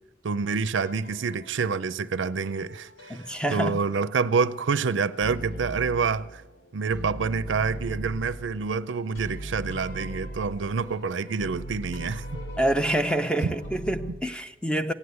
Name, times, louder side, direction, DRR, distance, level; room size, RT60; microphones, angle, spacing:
voice 1, 0.2-3.2 3.5-6.4 6.7-12.4 13.4-13.5, right 5 dB, 70° right, 0.5 m, -27 dB
sound 1, 0.8-2.0 2.4-4.3 4.7-6.6 6.9-14.1, right 1 dB, 70° left, 2.3 m, -40 dB
voice 2, 3.1-3.8 12.6-14.9, right 1 dB, 5° left, 0.6 m, -26 dB
15.5 x 9.5 x 8.1 m
head